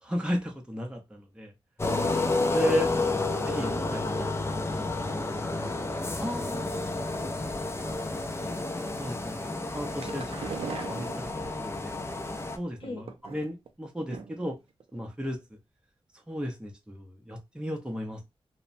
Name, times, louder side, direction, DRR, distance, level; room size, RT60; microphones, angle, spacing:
voice 1, 0.0-1.5 2.5-2.9 3.5-4.1 6.2-6.7 9.0-9.4 9.7-12.0 12.6-14.6 14.9-15.4 16.3-18.2, equal, 10° right, 0.6 m, -34 dB
sound 1, 1.8-12.6, left 2 dB, 30° left, 0.5 m, -30 dB
voice 2, 1.9-2.4 2.9-3.3 3.6-8.0 12.8-13.1, left 2 dB, 75° left, 0.8 m, -45 dB
sound 2, 9.7-11.8 12.8-13.7 14.1-14.5 14.8-14.9 15.2-15.3, right 6 dB, 85° right, 0.4 m, -40 dB
2.9 x 2.1 x 2.5 m
wide cardioid pair, 75°, 10 cm